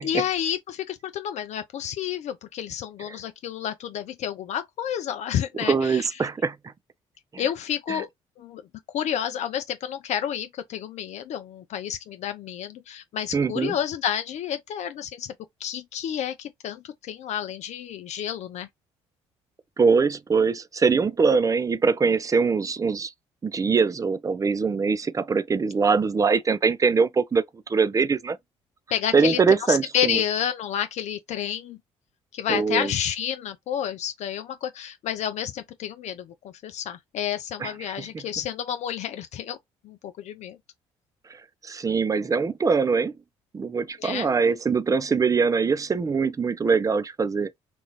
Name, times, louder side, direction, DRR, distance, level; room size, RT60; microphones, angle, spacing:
voice 1, 0.0-6.3 7.4-8.1 8.4-8.6 8.9-15.3 15.6-18.7 28.9-29.4 29.7-31.8 32.3-39.6 39.8-40.6 44.0-44.3, left 9 dB, 55° left, 0.4 m, -30 dB
voice 2, 5.6-6.6 7.3-7.4 7.9-8.0 13.3-13.8 19.8-23.1 23.4-27.4 27.7-28.4 29.1-30.2 32.5-32.9 37.6-38.2 41.6-43.1 43.5-47.5, right 5 dB, 25° right, 0.4 m, -23 dB
3.0 x 2.4 x 3.0 m
hypercardioid pair, 50°, 14 cm